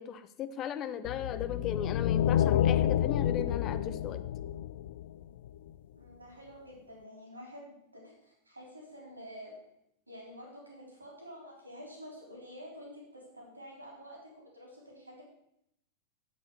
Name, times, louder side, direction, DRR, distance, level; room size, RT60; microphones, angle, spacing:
voice 1, 0.0-4.2, left 9 dB, 35° left, 12 dB, 0.7 m, -37 dB
sound 1, 1.0-5.5, left 10 dB, 55° left, 0.4 m, -29 dB
voice 2, 5.9-9.6 10.1-15.2, equal, 85° right, -1 dB, 3.7 m, -49 dB
8.4 x 7.8 x 6.6 m, 0.77 s
figure-of-eight pair, 90°, 0 cm